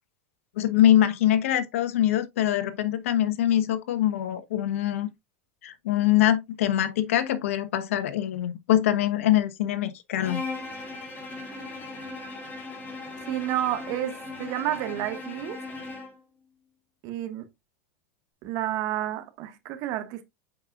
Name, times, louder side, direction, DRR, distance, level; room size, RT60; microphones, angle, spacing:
voice 1, 0.6-5.1 5.6-10.4, left 12 dB, 75° left, 1.1 m, -23 dB
Bowed string instrument, 10.2-16.2, left 3 dB, 25° left, 3.4 m, -38 dB
voice 2, 13.2-15.6 17.0-17.5 18.4-20.2, right 13 dB, 55° right, 1.5 m, -30 dB
7.9 x 5.3 x 2.4 m
hypercardioid pair, 100°, 7 cm